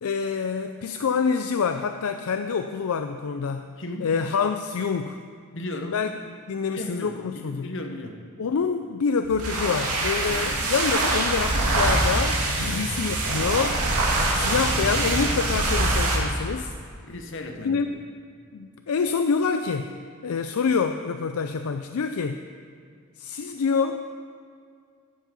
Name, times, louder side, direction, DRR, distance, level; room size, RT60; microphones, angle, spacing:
voice 1, 0.0-3.8 4.0-5.2 5.9-6.1 6.5-7.7 8.4-13.9 14.3-16.7 17.6-18.0 18.5-19.9 20.2-22.4 23.2-24.0, left 5 dB, 75° left, 8 dB, 0.4 m, -26 dB
voice 2, 3.8-4.1 5.5-6.0 6.7-8.2 10.3-10.6 12.6-13.0 17.0-17.8, left 1 dB, 60° left, 4 dB, 1.2 m, -36 dB
sound 1, 9.2-16.3, right 2 dB, 90° right, 2.3 m, -24 dB
13.5 x 7.5 x 5.3 m, 2.2 s
head